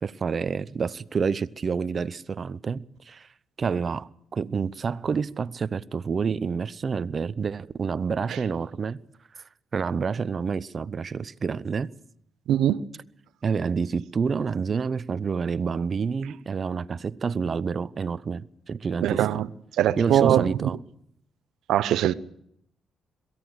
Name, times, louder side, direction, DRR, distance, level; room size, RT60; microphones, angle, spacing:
voice 1, 0.0-3.3 3.6-9.0 9.4-9.5 9.7-11.9 13.4-19.4 20.0-20.8, right 5 dB, 40° right, 0.8 m, -28 dB
voice 2, 12.5-12.8 19.0-19.5 19.8-20.7 21.7-22.1, right 11 dB, 80° right, 0.9 m, -22 dB
22.5 x 15.5 x 8.0 m
cardioid pair, 90°, 0 cm